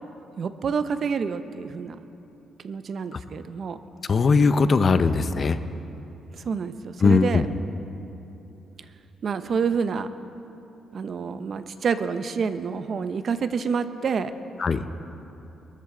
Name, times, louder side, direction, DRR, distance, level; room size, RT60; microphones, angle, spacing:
voice 1, 0.4-2.0 2.6-3.8 6.3-7.4 9.2-10.1 10.9-14.4, right 6 dB, 50° right, 11 dB, 0.7 m, -28 dB
voice 2, 4.1-5.6 7.0-7.4 14.6-14.8, left 4 dB, 40° left, 11 dB, 0.6 m, -19 dB
22.0 x 13.5 x 3.8 m, 2.9 s
cardioid pair, 120°, 0 cm